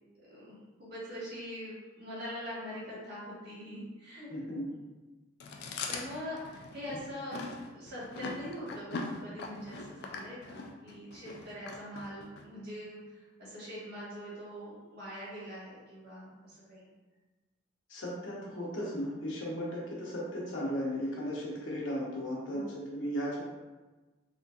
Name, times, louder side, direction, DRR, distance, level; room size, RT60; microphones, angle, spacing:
voice 1, 0.3-4.3 5.9-7.4 7.7-16.9 22.4-22.8, equal, 55° right, -8 dB, 1.5 m, -43 dB
voice 2, 4.3-4.7 17.9-23.4, equal, 85° left, -5 dB, 1.0 m, -36 dB
Chewing mastication, 5.4-12.4, left 3 dB, 60° left, 0.3 m, -41 dB
3.7 x 2.6 x 2.4 m, 1.2 s
head